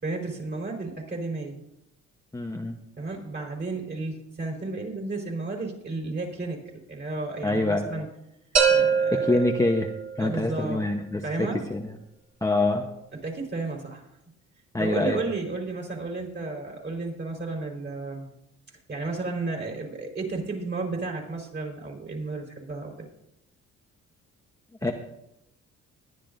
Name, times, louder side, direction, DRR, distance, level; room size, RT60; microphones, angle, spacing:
voice 1, 0.0-1.6 3.0-6.6 6.9-8.1 8.7-9.4 10.2-10.8 11.2-11.6 13.1-14.1 14.8-18.3 18.9-23.0 24.8-24.9, right 3 dB, 35° right, 0 dB, 4.4 m, -33 dB
voice 2, 2.3-2.8 7.4-7.9 9.1-9.9 10.2-11.9 12.4-12.8 14.7-15.2 24.8-24.9, left 2 dB, 10° left, 2 dB, 1.0 m, -25 dB
sound 1, 8.6-10.4, right 6 dB, 60° right, 3.3 m, -23 dB
21.0 x 11.0 x 2.6 m, 0.83 s
cardioid pair, 90°, 30 cm